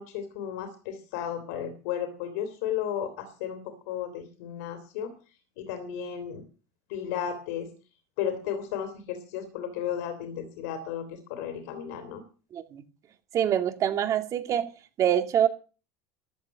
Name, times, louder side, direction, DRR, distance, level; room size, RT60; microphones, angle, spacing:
voice 1, 0.0-5.1 5.6-6.4 6.9-7.7 8.2-12.2, left 9 dB, 80° left, 7 dB, 3.2 m, -34 dB
voice 2, 13.3-14.7 15.0-15.5, right 10 dB, 40° right, 7 dB, 2.4 m, -25 dB
13.5 x 8.1 x 8.7 m, 0.36 s
supercardioid pair, 125°, 8 cm